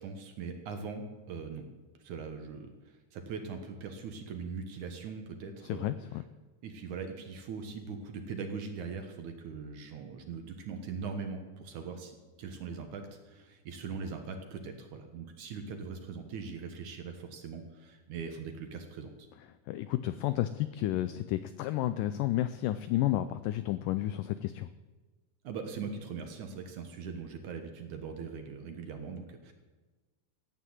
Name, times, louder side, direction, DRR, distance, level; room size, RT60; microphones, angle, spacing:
voice 1, 0.0-1.7 2.0-5.9 6.6-19.3 25.4-29.5, right 5 dB, 60° right, 5 dB, 2.3 m, -41 dB
voice 2, 5.6-6.2 19.7-24.7, left 14 dB, 85° left, 13 dB, 1.9 m, -31 dB
15.5 x 9.3 x 7.9 m, 1.3 s
omnidirectional pair, 4.4 m